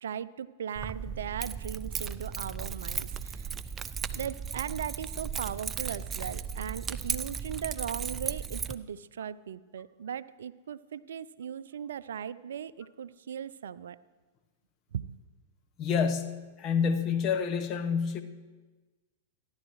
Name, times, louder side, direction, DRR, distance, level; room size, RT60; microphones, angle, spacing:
voice 1, 0.0-3.5 4.1-14.0 14.9-15.2, right 8 dB, 70° right, 15 dB, 0.5 m, -38 dB
Keys jangling, 0.7-8.7, right 6 dB, 20° right, 0.5 m, -36 dB
voice 2, 15.8-18.2, left 6 dB, 35° left, 7 dB, 1.1 m, -28 dB
29.0 x 11.5 x 3.2 m, 1.3 s
hypercardioid pair, 100°, 0 cm